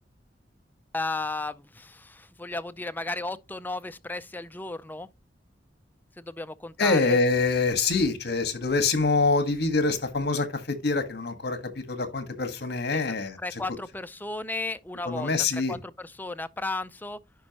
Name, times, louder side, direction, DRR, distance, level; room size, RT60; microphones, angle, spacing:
voice 1, 0.9-5.1 6.2-7.2 12.9-13.0 13.4-17.2, left 2 dB, 10° left, 0.5 m, -34 dB
voice 2, 6.8-13.4 15.0-15.8, left 3 dB, 65° left, 1.6 m, -25 dB
10.5 x 5.3 x 2.9 m
head